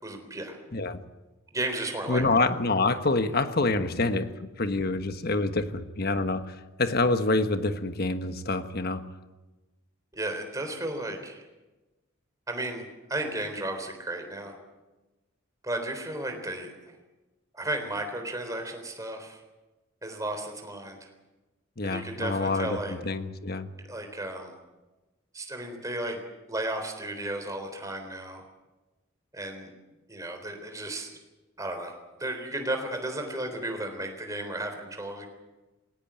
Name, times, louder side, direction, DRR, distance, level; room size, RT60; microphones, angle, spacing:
voice 1, 0.0-0.6 1.5-2.4 10.1-11.4 12.5-14.6 15.6-17.0 17.5-19.4 20.0-21.1 21.8-23.0 23.9-24.5 25.3-26.2 26.5-28.4 29.3-29.7 30.1-31.2 31.6-35.3, right 1 dB, 15° right, 5 dB, 3.7 m, -34 dB
voice 2, 2.1-9.0 21.8-23.7, left 3 dB, 50° left, 9 dB, 1.3 m, -27 dB
20.0 x 18.0 x 8.8 m, 1.1 s
head